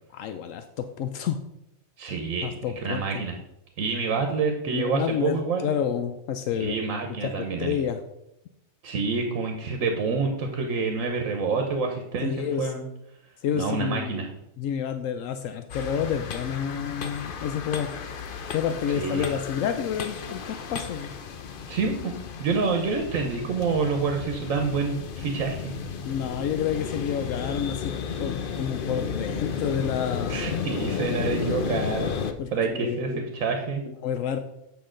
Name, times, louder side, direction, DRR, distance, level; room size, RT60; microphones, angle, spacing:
voice 1, 0.1-1.4 2.4-3.2 4.7-6.8 7.2-7.3 7.6-8.0 12.2-12.7 13.4-14.3 14.6-17.9 18.5-21.1 26.0-27.9 28.2-30.4 32.4-33.2 33.9-34.4, left 8 dB, 80° left, 8 dB, 1.0 m, -29 dB
voice 2, 2.0-3.3 3.8-5.7 6.6-7.8 8.8-12.3 12.6-12.9 13.5-14.3 18.9-19.4 21.7-22.1 22.4-25.8 30.3-32.2 32.5-33.8, right 4 dB, 85° right, 3 dB, 1.3 m, -27 dB
sound 1, 15.7-32.3, left 6 dB, 50° left, 0.7 m, -33 dB
8.5 x 5.5 x 3.8 m, 0.83 s
omnidirectional pair, 1.4 m